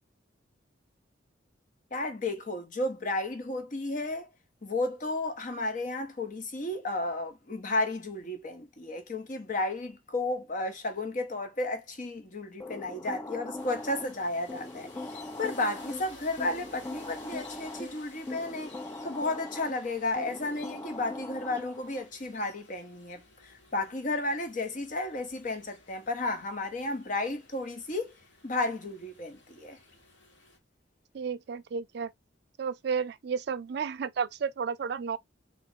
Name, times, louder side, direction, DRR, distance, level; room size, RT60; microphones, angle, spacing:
voice 1, 1.9-4.3 4.6-15.1 15.4-18.7 19.0-28.1 28.4-29.8, left 2 dB, 45° left, 0.9 m, -33 dB
sound 1, 12.6-22.0, left 2 dB, 15° left, 0.4 m, -41 dB
sound 2, 13.5-30.6, left 2 dB, 70° left, 1.7 m, -55 dB
voice 2, 31.1-32.1 32.6-35.2, right 6 dB, 60° right, 0.4 m, -32 dB
3.6 x 3.0 x 2.8 m
head